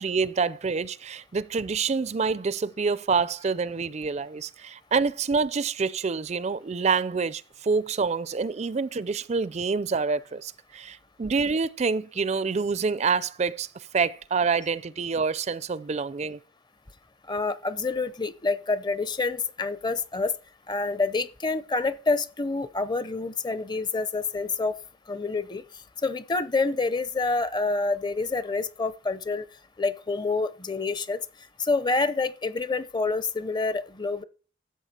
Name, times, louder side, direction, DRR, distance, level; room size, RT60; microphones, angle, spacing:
voice 1, 0.0-16.4, right 5 dB, 35° right, 0.4 m, -27 dB
voice 2, 17.3-20.3 20.7-24.8 25.1-25.6 26.0-29.5 29.8-31.2 31.6-34.2, left 3 dB, 20° left, 0.6 m, -27 dB
13.0 x 7.9 x 4.3 m
head